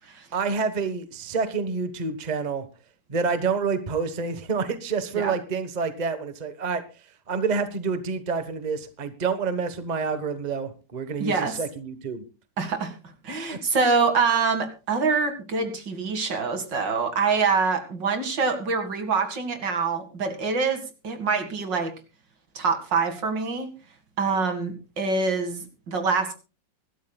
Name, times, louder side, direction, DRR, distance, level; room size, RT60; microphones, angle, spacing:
voice 1, 0.3-2.6 3.1-6.8 7.3-12.2, right 5 dB, 25° right, 10 dB, 1.2 m, -28 dB
voice 2, 11.2-11.5 12.6-12.9 13.2-21.9 22.5-23.7 24.2-26.3, right 4 dB, 75° right, 7 dB, 2.8 m, -25 dB
24.0 x 12.5 x 2.3 m, 0.32 s
omnidirectional pair, 2.0 m